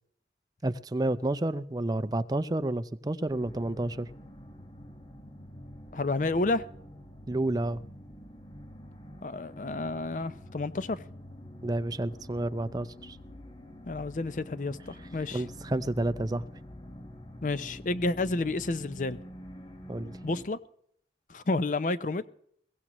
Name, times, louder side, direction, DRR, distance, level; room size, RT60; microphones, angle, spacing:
voice 1, 0.6-4.1 7.3-7.8 11.6-13.2 15.3-16.4 19.9-20.2, right 1 dB, 20° right, 0.5 m, -30 dB
sound 1, 3.3-20.4, left 1 dB, 30° left, 1.3 m, -47 dB
voice 2, 5.9-6.7 9.2-11.0 13.8-15.4 17.4-19.2 20.2-20.6 21.3-22.3, left 2 dB, 45° left, 0.6 m, -30 dB
22.0 x 16.0 x 3.0 m
head